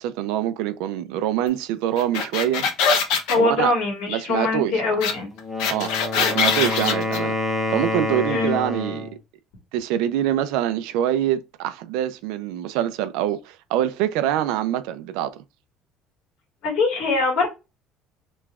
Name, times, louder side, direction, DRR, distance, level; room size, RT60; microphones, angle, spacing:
voice 1, 0.0-2.6 3.4-3.7 4.1-5.0 5.7-7.4 7.7-9.1 9.7-15.3, right 11 dB, 85° right, 0.4 m, -25 dB
sound 1, 2.0-3.4 5.0-5.1 5.4-7.2, left 6 dB, 75° left, 0.7 m, -22 dB
voice 2, 3.3-5.3 8.3-8.5 16.6-17.5, left 3 dB, 60° left, 1.5 m, -22 dB
Wind instrument woodwind instrument, 5.3-9.2, left 2 dB, 10° left, 0.5 m, -27 dB
3.0 x 2.3 x 3.4 m
cardioid pair, 175°, 0 cm